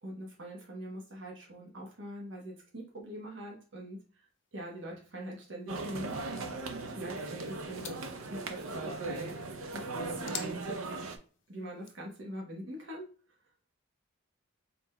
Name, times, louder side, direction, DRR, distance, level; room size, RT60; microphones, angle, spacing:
voice 1, 0.0-4.2 4.5-6.5 6.8-9.4 9.6-11.0 11.5-13.1, right 1 dB, 60° right, -2 dB, 1.0 m, -43 dB
sound 1, 4.3-12.1, left 8 dB, 60° left, 0.5 m, -51 dB
sound 2, 5.7-11.2, right 3 dB, 85° right, 0.5 m, -38 dB
3.9 x 3.6 x 2.2 m, 0.40 s
head